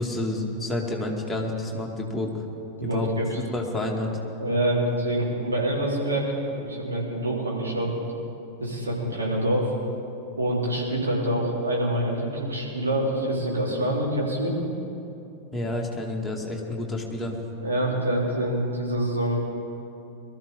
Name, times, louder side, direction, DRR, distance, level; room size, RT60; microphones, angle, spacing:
voice 1, 0.0-2.4 2.8-3.1 3.5-4.1 15.5-17.3, left 1 dB, 5° left, -2 dB, 2.1 m, -29 dB
voice 2, 2.8-3.4 4.4-7.9 8.6-9.7 10.4-14.6 17.6-19.4, right 1 dB, 75° right, -5 dB, 3.8 m, -26 dB
22.0 x 13.5 x 3.7 m, 2.8 s
figure-of-eight pair, 90°, 0 cm